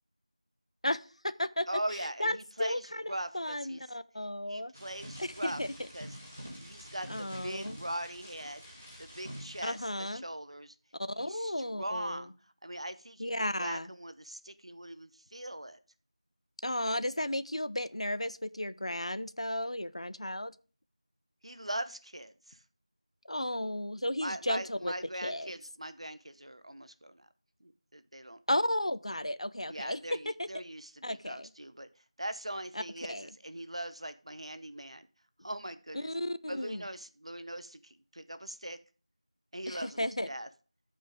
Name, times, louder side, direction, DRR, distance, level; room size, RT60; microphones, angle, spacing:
voice 1, 0.8-1.7 2.2-4.7 5.2-5.9 7.1-7.8 9.6-10.2 11.0-12.3 13.2-13.9 16.6-20.5 23.2-24.9 25.2-25.5 28.5-30.5 31.0-31.5 32.7-32.8 33.1-33.3 35.9-36.9 39.7-40.3, left 1 dB, 55° left, 0.6 m, -34 dB
voice 2, 1.7-3.8 4.5-5.6 5.9-6.1 6.6-8.7 9.0-10.7 11.2-12.3 12.6-13.3 13.6-15.8 21.4-22.6 24.2-27.3 27.6-28.4 29.7-31.9 32.2-35.1 35.4-36.1 36.5-38.8 39.5-40.5, right 1 dB, 55° right, 0.9 m, -41 dB
sound 1, 4.7-9.9, equal, 10° right, 0.6 m, -47 dB
14.0 x 5.5 x 3.5 m
figure-of-eight pair, 180°, 4 cm